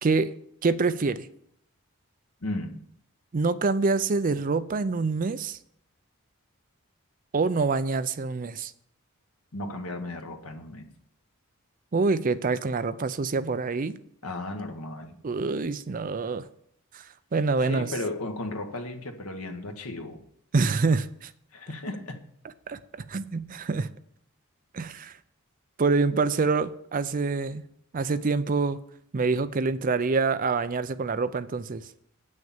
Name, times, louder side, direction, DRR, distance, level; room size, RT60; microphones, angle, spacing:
voice 1, 0.0-1.3 3.3-5.6 7.3-8.7 11.9-13.9 15.2-16.4 16.9-17.0 17.3-17.9 20.5-21.3 22.7-23.9 24.7-25.2 25.8-27.6 27.9-28.8 29.1-31.8, right 4 dB, 35° right, 0.4 m, -26 dB
voice 2, 2.4-2.8 9.5-10.9 14.2-15.2 17.7-20.2 21.5-22.2, left 2 dB, 75° left, 1.4 m, -35 dB
8.9 x 6.4 x 7.2 m
head